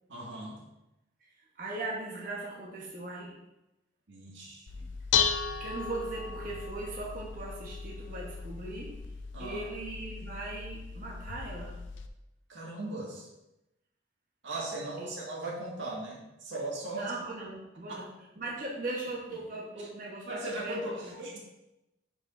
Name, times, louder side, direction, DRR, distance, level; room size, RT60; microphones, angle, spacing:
voice 1, 0.1-0.6 4.1-4.9 9.3-9.7 12.5-13.3 14.4-17.1 17.9-18.0 19.8-19.9 20.3-21.4, right 2 dB, 85° right, -3 dB, 2.0 m, -38 dB
voice 2, 1.6-3.4 5.6-9.0 9.4-11.8 15.0-15.1 16.9-21.2, right 2 dB, 45° right, -4 dB, 1.2 m, -39 dB
Dishes pots and pans, 4.7-12.1, left 6 dB, 90° left, 0.5 m, -35 dB
10.5 x 5.0 x 2.7 m, 0.93 s
head